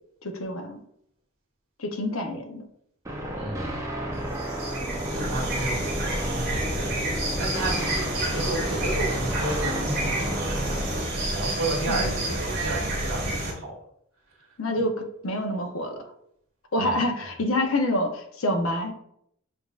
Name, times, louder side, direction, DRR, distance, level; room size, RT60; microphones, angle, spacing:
voice 1, 0.2-0.8 1.8-2.7 11.9-12.2 14.6-16.0 16.7-18.9, left 1 dB, 80° left, 4 dB, 0.7 m, -27 dB
sound 1, 3.0-11.0, equal, 15° right, 0.5 m, -32 dB
voice 2, 3.3-3.9 5.1-6.1 6.5-7.1 7.4-13.8 16.8-17.0, right 2 dB, 75° right, -1 dB, 1.4 m, -32 dB
sound 2, 4.2-13.5, right 1 dB, 50° right, 1.0 m, -29 dB
6.7 x 2.7 x 2.4 m, 0.71 s
head